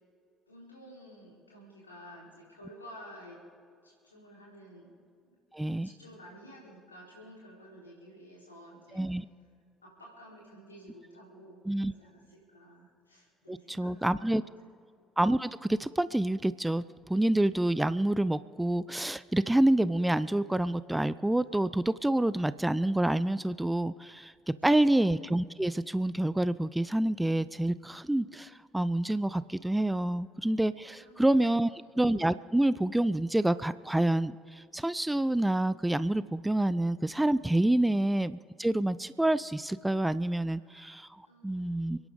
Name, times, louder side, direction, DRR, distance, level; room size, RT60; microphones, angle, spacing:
voice 1, 0.5-3.4 3.8-4.9 5.2-5.3 5.7-9.0 9.8-14.7 24.7-24.9 30.9-31.6 37.8-38.0 40.5-40.8 41.2-41.9, equal, 85° left, -3 dB, 3.9 m, -52 dB
voice 2, 5.5-5.9 8.9-9.2 11.7-11.9 13.5-14.4 15.2-16.8 17.1-24.3 24.6-41.1 41.4-42.0, right 1 dB, 10° right, 17 dB, 0.5 m, -27 dB
30.0 x 10.5 x 3.8 m, 2.2 s
figure-of-eight pair, 50°, 0 cm